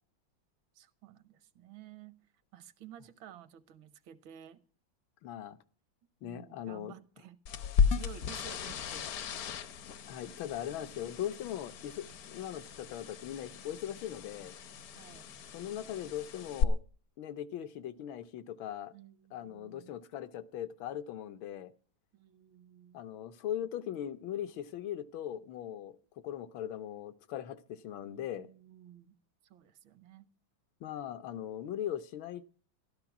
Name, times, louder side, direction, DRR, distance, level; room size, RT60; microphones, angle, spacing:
voice 1, 0.7-2.2 2.5-4.6 6.2-7.4 7.9-9.1 14.9-15.3 18.9-19.9 22.1-23.0 28.1-29.1 29.4-30.3, right 10 dB, 75° right, 1.6 m, -53 dB
voice 2, 5.2-5.6 6.2-6.9 10.1-14.6 15.5-16.8 17.2-18.9 19.3-21.7 22.9-26.0 26.2-28.5 30.8-32.4, left 10 dB, 80° left, 1.6 m, -39 dB
sound 1, 7.5-16.6, left 7 dB, 60° left, 1.1 m, -35 dB
13.0 x 12.5 x 5.9 m
omnidirectional pair, 2.2 m